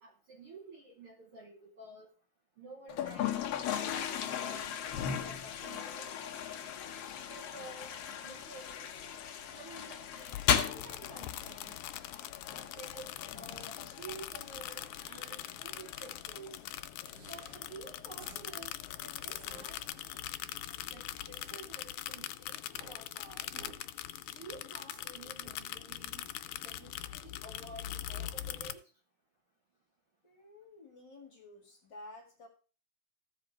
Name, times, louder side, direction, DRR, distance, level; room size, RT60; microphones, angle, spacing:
voice 1, 0.0-2.1 2.6-4.8 5.2-6.5 7.3-8.9 9.5-11.8 12.5-16.6 17.3-20.4 20.9-23.5 24.3-26.3 26.6-28.9, right 3 dB, 55° right, 1 dB, 1.7 m, -51 dB
Toilet flush, 2.9-19.9, left 8 dB, 70° left, 1.5 m, -38 dB
sound 1, 10.2-28.7, left 12 dB, 85° left, 2.1 m, -42 dB
sound 2, 15.9-16.1 17.0-17.6 18.2-18.4 19.2-19.7 21.3-21.6 22.6-23.0 23.5-24.3 24.9-25.0, right 2 dB, 30° right, 2.4 m, -54 dB
voice 2, 30.2-32.5, left 2 dB, 40° left, 1 dB, 2.1 m, -52 dB
14.5 x 5.1 x 4.5 m, 0.37 s
omnidirectional pair, 3.5 m